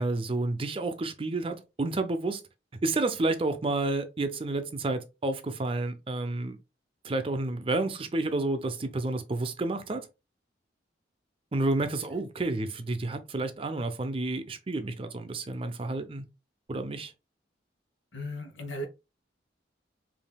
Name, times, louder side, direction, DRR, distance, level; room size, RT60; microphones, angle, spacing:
voice 1, 0.0-2.4 2.8-6.6 7.0-10.1 11.5-16.3 16.7-17.1, right 2 dB, 30° right, 0.5 m, -30 dB
voice 2, 18.1-18.9, left 1 dB, 85° left, 1.1 m, -36 dB
5.3 x 2.7 x 2.2 m
head